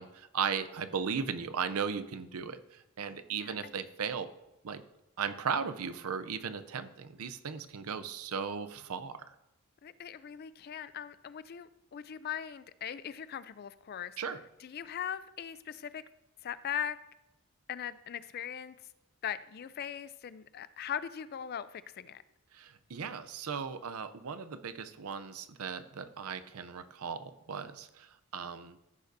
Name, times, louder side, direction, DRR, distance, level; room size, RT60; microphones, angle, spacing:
voice 1, 0.0-4.3 4.6-4.8 5.2-9.3 14.2-14.4 22.5-28.8, right 6 dB, 85° right, 11 dB, 0.6 m, -37 dB
voice 2, 9.8-14.1 14.6-16.0 16.4-17.0 17.7-18.8 19.2-22.2, left 9 dB, 45° left, 15 dB, 0.3 m, -40 dB
14.5 x 6.6 x 2.6 m, 0.94 s
head